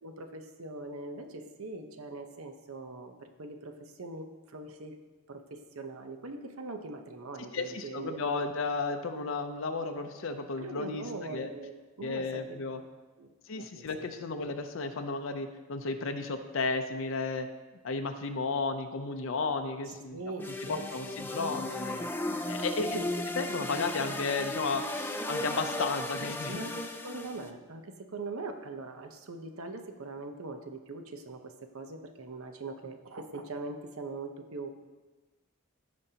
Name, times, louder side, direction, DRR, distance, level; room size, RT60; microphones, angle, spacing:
voice 1, 0.0-5.0 5.3-8.2 10.6-12.6 13.2-14.0 20.1-21.2 21.5-21.7 22.8-23.1 26.5-34.7, right 3 dB, 85° right, 6 dB, 0.8 m, -42 dB
voice 2, 7.5-11.5 12.0-12.8 13.5-17.5 17.8-20.2 20.7-22.1 22.5-26.6, left 4 dB, 65° left, 6 dB, 0.6 m, -33 dB
sound 1, 20.4-27.5, left 1 dB, 10° left, 0.3 m, -36 dB
15.5 x 5.3 x 2.8 m, 1.2 s
head